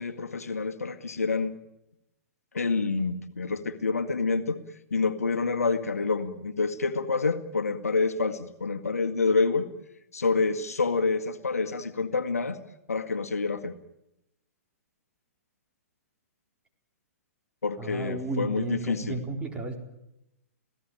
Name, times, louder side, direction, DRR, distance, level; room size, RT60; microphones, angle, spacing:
voice 1, 0.0-1.5 2.5-4.6 4.9-9.7 10.1-12.6 12.9-13.7 17.6-19.2, left 4 dB, 75° left, 7 dB, 2.0 m, -27 dB
voice 2, 17.8-19.8, right 2 dB, 15° right, 2 dB, 4.2 m, -33 dB
28.0 x 17.5 x 8.9 m, 0.87 s
figure-of-eight pair, 115°, 8 cm